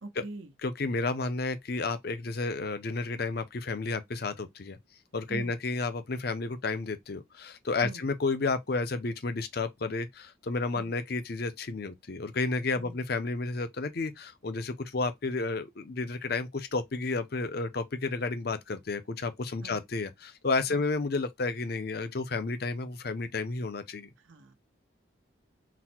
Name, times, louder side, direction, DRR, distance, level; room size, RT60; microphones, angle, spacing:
voice 1, 0.0-0.5 5.3-5.5 7.8-8.0 10.8-10.9 12.8-13.0 19.6-19.8 20.7-20.8 24.2-24.5, right 2 dB, 85° right, 0.9 m, -43 dB
voice 2, 0.6-4.8 5.1-24.1, left 3 dB, 50° left, 0.6 m, -31 dB
4.0 x 2.2 x 4.3 m
head